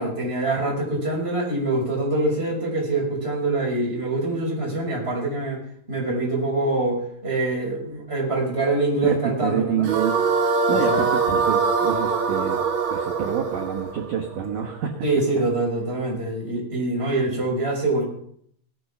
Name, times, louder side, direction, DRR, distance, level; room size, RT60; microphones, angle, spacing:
voice 1, 0.0-5.6 5.9-9.9 10.7-11.0 15.0-18.0, right 2 dB, 10° right, -2 dB, 5.8 m, -24 dB
voice 2, 9.0-10.2 10.7-12.6 12.9-15.1, right 8 dB, 75° right, 3 dB, 1.8 m, -27 dB
sound 1, 9.8-15.0, right 5 dB, 55° right, 2.1 m, -23 dB
18.5 x 11.0 x 6.0 m, 0.65 s
omnidirectional pair, 5.9 m